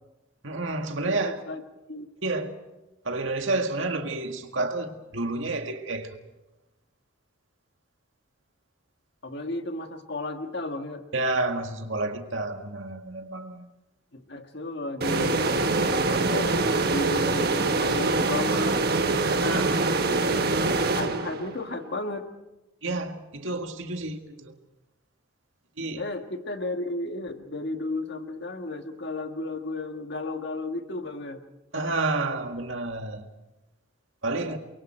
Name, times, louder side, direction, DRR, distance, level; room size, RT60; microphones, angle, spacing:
voice 1, 0.4-1.4 2.2-2.5 3.0-6.1 11.1-13.7 19.2-19.8 22.8-24.6 25.8-26.0 31.7-33.3 34.2-34.6, right 2 dB, 75° right, 5 dB, 2.0 m, -30 dB
voice 2, 1.1-1.6 1.9-2.5 9.2-11.0 14.1-18.8 20.0-22.3 25.9-31.4 34.3-34.6, left 2 dB, 55° left, 5 dB, 1.9 m, -34 dB
sound 1, 15.0-21.7, right 3 dB, 50° right, 1.4 m, -24 dB
29.5 x 23.0 x 4.6 m, 1.0 s
head